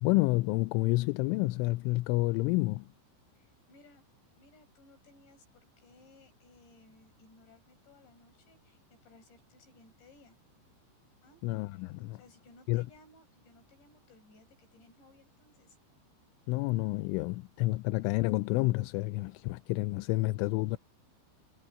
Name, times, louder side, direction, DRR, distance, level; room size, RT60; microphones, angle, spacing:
voice 1, 0.0-2.9 11.4-12.2 12.7-12.9 16.5-20.8, left 21 dB, 90° left, 3.1 m, -29 dB
voice 2, 3.4-4.0 4.4-10.4 11.2-11.4 12.1-15.8, left 2 dB, 65° left, 9.6 m, -60 dB
omnidirectional pair, 5.5 m